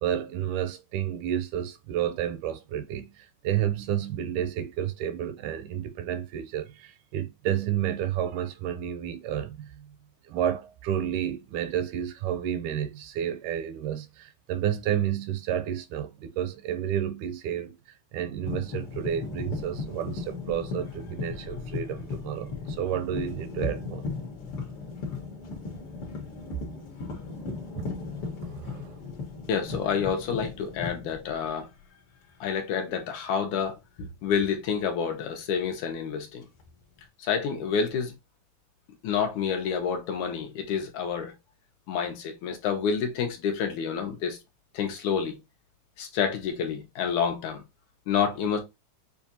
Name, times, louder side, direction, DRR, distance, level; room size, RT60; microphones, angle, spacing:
voice 1, 0.0-9.8 10.3-17.8 18.1-24.1 27.8-27.9 28.4-28.9, right 10 dB, 80° right, 1.9 m, -31 dB
sound 1, 18.4-31.9 32.2-32.7 34.4-34.6 36.4-37.0, left 4 dB, 55° left, 1.9 m, -37 dB
voice 2, 29.5-31.7 32.4-36.4 37.2-38.1 39.0-41.3 41.9-44.4 44.7-45.4 46.0-47.6 48.1-48.6, left 7 dB, 75° left, 2.2 m, -28 dB
7.1 x 2.4 x 2.7 m
omnidirectional pair, 3.8 m